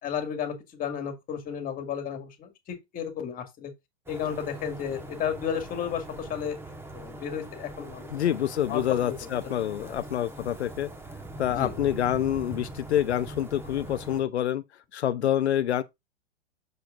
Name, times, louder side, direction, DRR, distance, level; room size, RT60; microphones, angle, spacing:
voice 1, 0.0-3.7 4.1-6.6 6.9-8.1 8.7-9.1 9.4-9.5 9.8-9.9 11.5-11.7, left 8 dB, 25° left, 2.0 m, -33 dB
sound 1, 4.1-14.2, right 2 dB, 5° right, 1.2 m, -42 dB
voice 2, 8.1-10.9 11.4-14.6 14.9-15.8, left 11 dB, 80° left, 0.6 m, -27 dB
7.8 x 6.7 x 2.5 m
hypercardioid pair, 115°, 33 cm